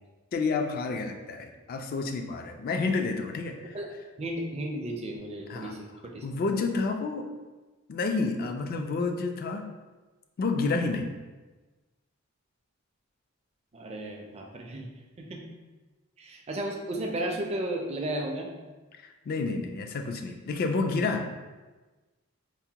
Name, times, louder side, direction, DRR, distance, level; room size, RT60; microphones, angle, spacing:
voice 1, 0.3-3.8 5.5-5.7 6.2-7.3 7.9-9.7 10.4-11.1 19.0-21.3, left 3 dB, 45° left, 5 dB, 0.3 m, -29 dB
voice 2, 4.2-6.3 13.7-14.9 15.2-15.4 16.2-18.5, right 1 dB, 30° right, 1 dB, 0.4 m, -34 dB
4.7 x 2.1 x 2.8 m, 1.2 s
head